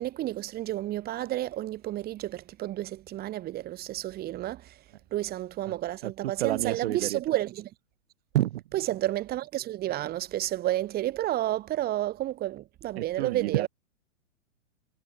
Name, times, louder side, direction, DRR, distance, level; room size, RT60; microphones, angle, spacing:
voice 1, 0.0-4.8 5.1-7.7 8.7-13.7, right 14 dB, 25° right, 3.9 m, -31 dB
voice 2, 6.0-7.2 8.3-8.6 13.0-13.7, right 14 dB, 50° right, 4.5 m, -29 dB
hypercardioid pair, 130°, 39 cm